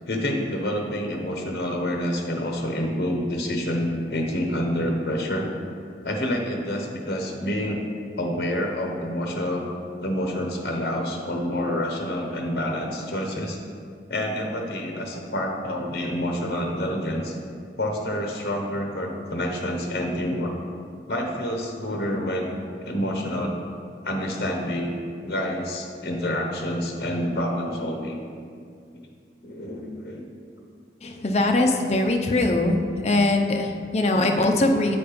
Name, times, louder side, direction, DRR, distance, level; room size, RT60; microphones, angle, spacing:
voice 1, 0.0-5.5 6.0-7.8 8.2-9.7 10.0-13.6 14.1-17.4 17.8-20.5 21.1-22.5 22.8-23.6 24.0-24.9 25.2-28.2 29.4-30.2, equal, 60° left, 1 dB, 0.9 m, -28 dB
voice 2, 31.0-32.8 33.0-35.0, left 2 dB, 35° left, 3 dB, 0.5 m, -21 dB
7.8 x 4.2 x 5.0 m, 2.2 s
head